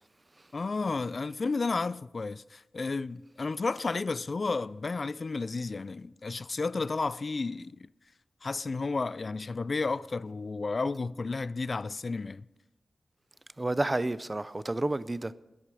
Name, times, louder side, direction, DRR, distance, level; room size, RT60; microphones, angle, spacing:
voice 1, 0.5-7.9 8.4-12.4, left 3 dB, 45° left, 0.3 m, -32 dB
voice 2, 13.6-15.3, right 2 dB, 25° right, 0.5 m, -30 dB
13.0 x 11.0 x 4.8 m
wide cardioid pair, 90°, 0 cm